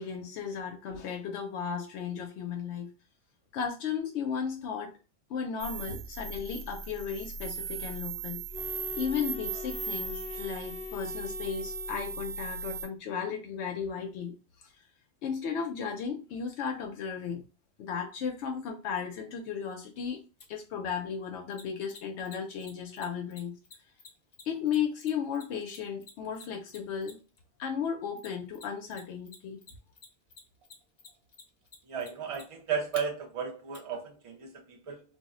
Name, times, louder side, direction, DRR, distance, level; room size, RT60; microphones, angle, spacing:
voice 1, 0.0-2.9 3.5-4.9 5.3-8.4 8.9-14.3 15.2-17.4 17.8-20.2 20.5-23.5 24.5-27.2 27.6-29.6, left 7 dB, 85° left, 0.9 m, -35 dB
sound 1, 5.6-12.8, right 4 dB, 85° right, 0.9 m, -38 dB
sound 2, 8.5-12.4, left 4 dB, 20° right, 0.9 m, -42 dB
Mechanisms, 20.4-20.5 21.5-27.4 28.2-29.0 29.3-33.0 33.7-33.8, left 4 dB, 50° left, 0.7 m, -49 dB
voice 2, 31.9-35.0, right 6 dB, 40° right, 0.5 m, -34 dB
2.4 x 2.1 x 3.6 m
omnidirectional pair, 1.1 m